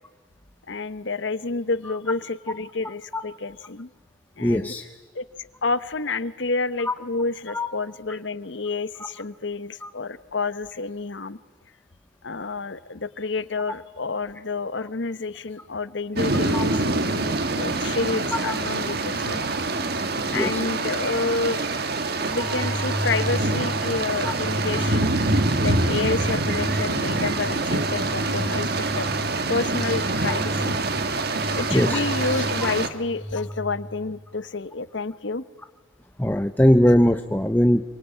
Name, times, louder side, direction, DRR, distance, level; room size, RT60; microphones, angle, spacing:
voice 1, 0.7-3.9 4.4-4.7 5.1-11.4 12.2-19.4 20.3-21.6 22.3-25.1 25.6-29.1 29.5-30.7 31.5-35.4, left 3 dB, 65° left, 15 dB, 1.0 m, -29 dB
voice 2, 4.4-4.8 6.9-7.0 7.5-7.7 9.8-9.9 16.5-16.6 18.4-18.5 20.3-20.6 24.2-24.3 31.7-32.0 36.2-37.8, equal, 10° left, 8 dB, 0.7 m, -20 dB
sound 1, 16.2-32.9, right 2 dB, 55° right, 1.6 m, -25 dB
sound 2, 22.3-34.3, equal, 10° right, 1.1 m, -34 dB
27.0 x 24.0 x 9.0 m, 1.5 s
head